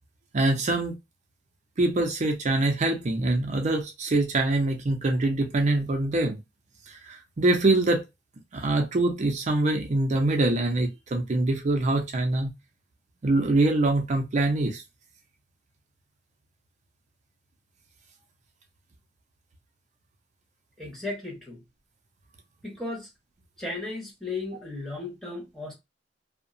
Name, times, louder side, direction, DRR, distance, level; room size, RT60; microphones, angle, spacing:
voice 1, 0.3-0.9 1.8-6.4 6.9-8.0 8.5-12.5 13.2-14.8, right 2 dB, 40° right, 0.5 m, -24 dB
voice 2, 20.8-21.6 22.6-23.1 23.6-25.7, left 2 dB, ahead, 1.2 m, -35 dB
2.7 x 2.1 x 2.5 m
head